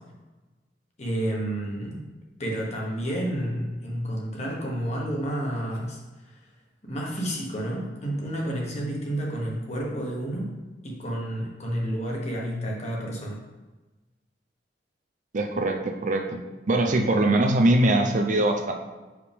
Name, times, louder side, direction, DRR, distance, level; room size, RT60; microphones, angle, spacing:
voice 1, 1.0-2.0 2.4-6.0 6.8-10.5 10.8-13.4, right 1 dB, 40° left, -2 dB, 1.3 m, -30 dB
voice 2, 15.3-16.2 16.7-18.7, right 1 dB, 45° right, 3 dB, 0.6 m, -22 dB
6.5 x 4.8 x 3.6 m, 1.2 s
head